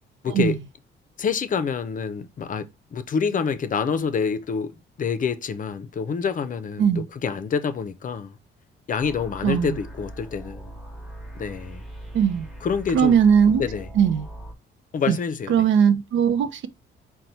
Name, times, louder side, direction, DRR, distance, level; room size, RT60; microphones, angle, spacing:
voice 1, 0.2-0.6 1.2-4.7 5.0-8.4 8.9-10.7 11.4-11.8 12.6-13.2 13.6-13.9 14.9-15.7, left 6 dB, 40° left, 0.5 m, -27 dB
sound 1, 9.0-14.5, right 1 dB, ahead, 1.0 m, -40 dB
voice 2, 9.4-9.8 12.1-12.5 12.9-13.6 14.0-14.3 15.1-15.2 15.5-16.7, right 8 dB, 70° right, 0.6 m, -19 dB
4.0 x 2.2 x 4.3 m
cardioid pair, 90°, 20 cm